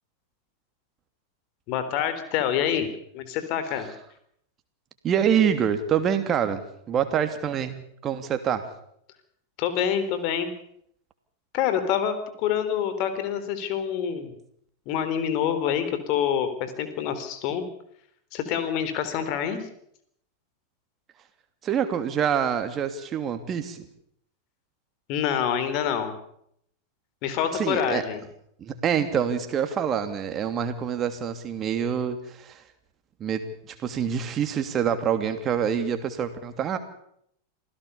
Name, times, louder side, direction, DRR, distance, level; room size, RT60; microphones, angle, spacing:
voice 1, 1.7-2.9 3.1-3.9 9.6-10.5 11.5-14.3 14.9-17.7 18.3-19.7 25.1-26.1 27.2-28.2, left 9 dB, 45° left, 10 dB, 3.8 m, -26 dB
voice 2, 5.0-6.6 6.9-8.6 21.6-23.8 27.5-28.0 28.6-32.6 33.2-36.8, right 8 dB, 30° right, 8 dB, 2.9 m, -26 dB
26.5 x 16.5 x 7.0 m, 0.71 s
figure-of-eight pair, 90°, 0 cm